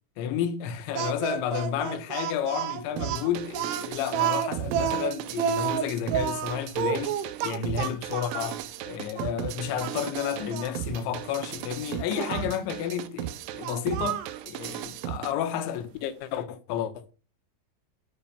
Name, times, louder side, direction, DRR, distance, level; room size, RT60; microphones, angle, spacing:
voice 1, 0.2-14.2 14.5-17.1, left 9 dB, 80° left, 3.5 m, -31 dB
Speech, 1.0-8.5 9.2-9.3 9.8-10.7 12.2-12.5 13.6-14.4, right 9 dB, 70° right, 3.0 m, -30 dB
sound 1, 3.0-15.3, right 11 dB, 90° right, 3.4 m, -36 dB
11.0 x 8.0 x 5.8 m
omnidirectional pair, 5.4 m